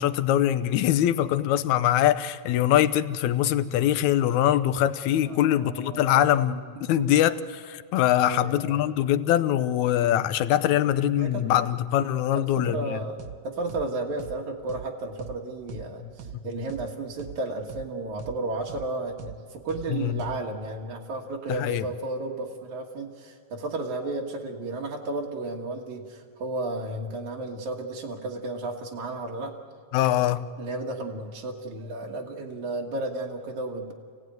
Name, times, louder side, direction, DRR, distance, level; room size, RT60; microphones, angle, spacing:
voice 1, 0.0-13.0 16.3-16.4 19.9-20.2 21.5-21.9 29.9-30.5, left 12 dB, 80° left, 13 dB, 2.1 m, -23 dB
voice 2, 5.3-6.2 7.0-7.1 8.2-8.8 10.7-10.8 11.2-11.4 12.3-13.2 13.4-29.6 30.6-33.9, right 2 dB, 80° right, -1 dB, 3.0 m, -33 dB
sound 1, 13.2-13.4 13.7-13.9 14.2-14.4 14.7-14.9 15.2-15.4 15.7-15.9 16.2-16.4 16.7-16.9 17.2-17.4 17.7-17.9 18.2-18.4 18.7-18.9 19.2-19.4 19.7-19.9 20.2-20.4, right 7 dB, 60° right, 1.3 m, -40 dB
28.0 x 17.0 x 9.3 m, 2.1 s
omnidirectional pair, 3.3 m